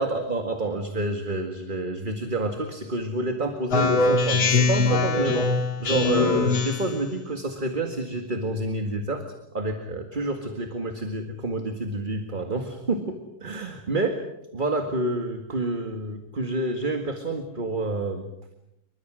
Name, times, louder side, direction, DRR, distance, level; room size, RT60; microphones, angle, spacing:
voice 1, 0.0-9.2 9.5-14.2 14.5-18.2, right 2 dB, 25° right, 5 dB, 2.0 m, -28 dB
Speech synthesizer, 3.7-7.0, left 3 dB, 85° left, 2.9 m, -22 dB
28.5 x 24.0 x 6.3 m, 0.82 s
omnidirectional pair, 2.2 m